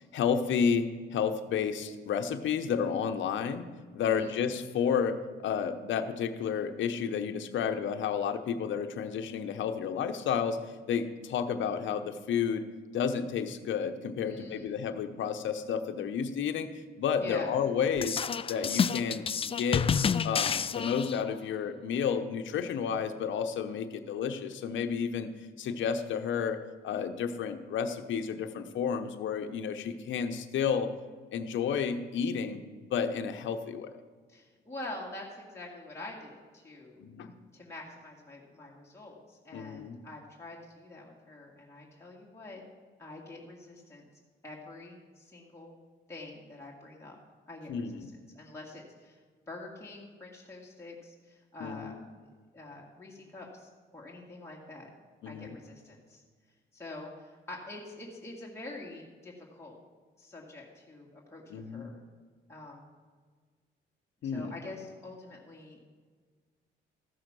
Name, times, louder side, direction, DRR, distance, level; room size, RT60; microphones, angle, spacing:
voice 1, 0.1-3.7 3.9-12.6 12.9-16.7 17.0-18.2 18.5-19.9 20.2-25.3 25.6-30.9 31.3-32.6 32.9-34.0 37.0-37.3 39.5-40.0 47.7-48.0 51.6-52.0 55.2-55.6 61.5-61.9 64.2-64.5, left 7 dB, 70° left, 7 dB, 0.9 m, -31 dB
voice 2, 4.0-4.3 14.2-14.7 17.2-17.5 34.3-42.6 43.0-44.1 44.4-45.8 46.1-47.2 47.5-49.2 49.5-52.0 52.5-54.9 55.3-56.2 56.7-59.8 60.2-62.0 62.5-62.9 64.2-66.0, left 2 dB, 15° left, -3 dB, 2.0 m, -46 dB
sound 1, 18.0-21.4, left 7 dB, 30° left, 0.4 m, -29 dB
14.5 x 6.4 x 6.2 m, 1.5 s
cardioid pair, 90°, 20 cm